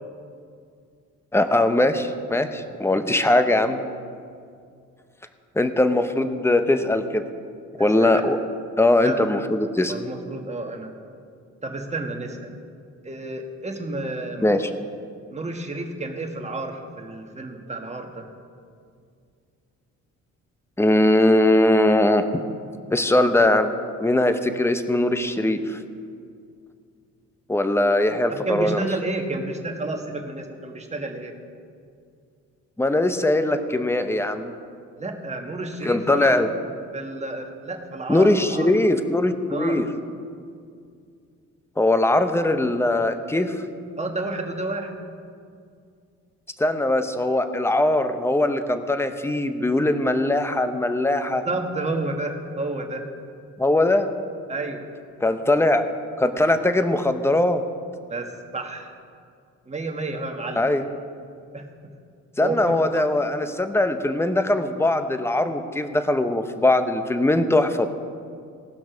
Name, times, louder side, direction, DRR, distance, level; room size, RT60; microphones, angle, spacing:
voice 1, 1.3-3.8 5.5-7.2 7.8-8.4 8.8-9.9 14.4-14.7 20.8-22.3 22.9-23.7 24.0-25.8 27.5-28.8 32.8-34.5 35.8-36.5 38.1-39.9 41.8-43.6 46.6-51.4 53.6-54.1 55.2-55.9 56.2-57.6 60.6-60.9 62.4-67.9, left 1 dB, 10° left, 9 dB, 0.8 m, -21 dB
voice 2, 7.8-8.2 9.0-9.2 9.9-10.9 11.6-12.5 13.0-14.5 15.3-18.2 28.3-31.3 35.0-36.4 36.9-38.7 39.5-39.8 44.0-45.0 51.4-53.0 54.5-54.8 58.1-58.9 59.7-60.7 61.5-61.7 62.4-63.0, right 2 dB, 20° right, 3 dB, 1.5 m, -30 dB
18.0 x 6.1 x 5.1 m, 2.3 s
cardioid pair, 90°, 30 cm